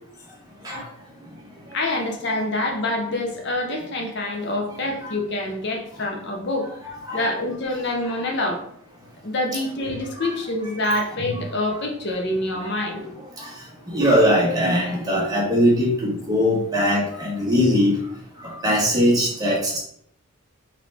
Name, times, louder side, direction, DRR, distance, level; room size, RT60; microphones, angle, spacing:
voice 1, 0.5-1.8 5.0-5.2 7.1-7.3 9.8-9.9 10.2-10.3 11.2-11.4 12.8-19.8, equal, 20° right, -4 dB, 1.2 m, -22 dB
voice 2, 1.7-6.7 7.1-8.6 9.2-13.0, left 1 dB, 55° left, 2 dB, 0.6 m, -26 dB
3.9 x 3.2 x 3.4 m, 0.68 s
head